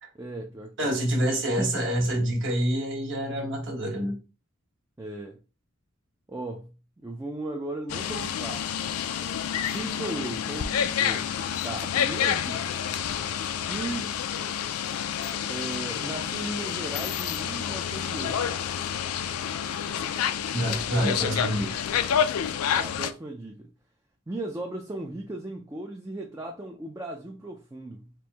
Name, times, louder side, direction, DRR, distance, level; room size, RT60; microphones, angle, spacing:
voice 1, 0.1-1.9 5.0-5.4 6.3-6.7 7.0-8.7 9.7-11.3 11.6-12.7 13.6-14.1 15.5-18.5 22.7-23.7 24.3-28.1, right 2 dB, 15° right, 0.3 m, -37 dB
voice 2, 0.8-4.1 20.5-21.9, right 1 dB, 55° right, 1.4 m, -27 dB
sound 1, 7.9-23.1, left 8 dB, 85° left, 0.4 m, -29 dB
4.5 x 2.5 x 3.4 m
head